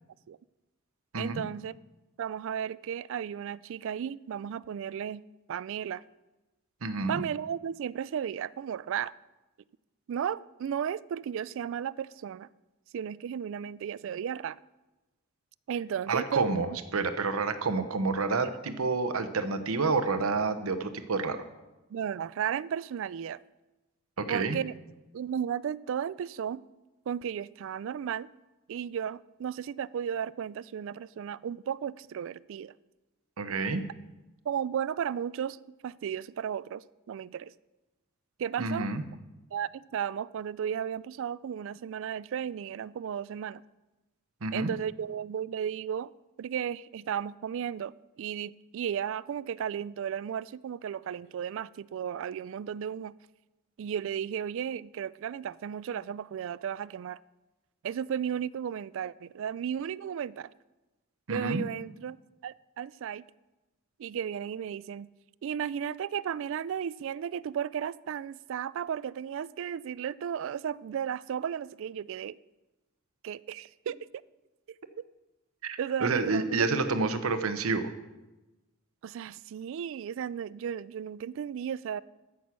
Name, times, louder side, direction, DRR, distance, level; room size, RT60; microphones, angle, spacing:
voice 1, 1.2-1.7 2.2-6.0 7.1-9.1 10.1-12.5 12.9-14.6 15.7-16.5 18.4-18.5 21.9-23.4 24.3-24.7 25.1-26.6 27.1-28.3 28.7-32.7 34.5-37.5 38.4-38.9 39.5-43.6 44.5-46.1 46.4-47.9 48.2-53.1 53.8-57.2 57.8-60.5 61.3-62.2 62.4-63.2 64.0-65.1 65.4-72.4 73.2-74.0 75.0-75.1 75.8-76.6 79.0-82.0, right 8 dB, 65° right, 0.3 m, -34 dB
voice 2, 6.8-7.2 16.1-16.7 16.9-21.4 24.2-24.6 33.4-33.8 38.6-39.0 44.4-44.7 61.3-61.7 75.6-77.9, right 3 dB, 90° right, 0.9 m, -29 dB
14.0 x 6.2 x 6.0 m
head